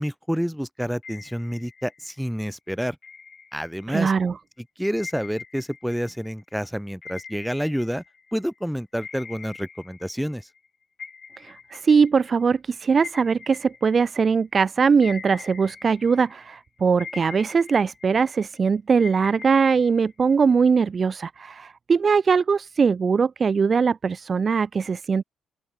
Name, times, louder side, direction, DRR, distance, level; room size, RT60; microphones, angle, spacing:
voice 1, 0.0-3.0 3.5-4.1 4.8-8.0 8.3-10.5, equal, ahead, 1.0 m, -28 dB
sound 1, 1.0-2.3 3.0-4.2 5.0-8.6 9.0-10.7 11.0-14.6 15.0-16.6 17.0-18.6 19.0-20.7, left 5 dB, 40° left, 3.4 m, -43 dB
voice 2, 3.9-4.4 11.4-25.2, right 5 dB, 40° right, 0.5 m, -21 dB
open air
cardioid pair, 90°, 0 cm